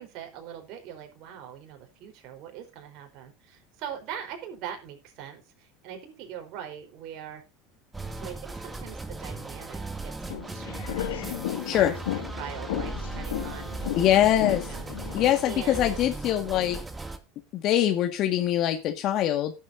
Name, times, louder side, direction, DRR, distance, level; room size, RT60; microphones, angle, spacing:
voice 1, 0.0-7.4 8.2-11.4 11.7-13.8 14.0-16.0, right 9 dB, 60° right, 4 dB, 4.3 m, -42 dB
sound 1, 7.9-17.2, right 3 dB, 15° right, 2.5 m, -37 dB
sound 2, 10.2-15.5, left 12 dB, 80° left, 2.1 m, -34 dB
voice 2, 11.5-12.0 14.0-14.8 15.1-16.8 17.5-19.5, left 12 dB, 50° left, 5 dB, 1.8 m, -23 dB
17.0 x 8.6 x 2.7 m, 0.29 s
hypercardioid pair, 85°, 0 cm